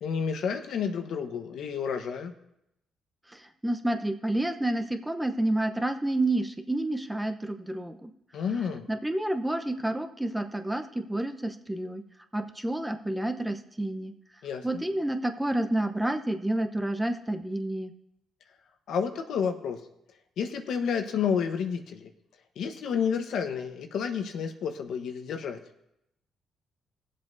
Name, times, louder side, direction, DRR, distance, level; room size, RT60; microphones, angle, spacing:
voice 1, 0.0-2.3 8.3-8.9 14.4-14.6 18.9-19.8 20.4-22.1 22.6-25.6, left 6 dB, 75° left, 6 dB, 1.1 m, -30 dB
voice 2, 3.3-8.1 8.9-12.0 12.3-14.1 14.6-17.9, right 1 dB, 10° right, 6 dB, 0.8 m, -29 dB
19.5 x 7.6 x 2.7 m, 0.81 s
cardioid pair, 90°, 0 cm